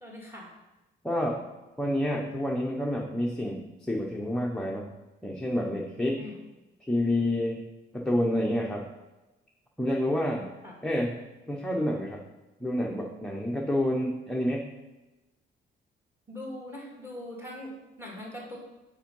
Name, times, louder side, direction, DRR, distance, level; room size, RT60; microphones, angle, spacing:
voice 1, 0.0-0.5 6.1-6.4 10.6-10.8 16.3-18.6, left 1 dB, 10° right, -2 dB, 2.1 m, -41 dB
voice 2, 1.0-1.4 1.8-4.9 5.2-6.3 6.9-7.6 7.9-8.9 9.8-10.5 10.8-11.1 11.5-12.2 12.6-14.6, left 1 dB, 5° left, -2 dB, 0.7 m, -28 dB
5.6 x 4.5 x 5.4 m, 1.0 s
cardioid pair, 105°, 19 cm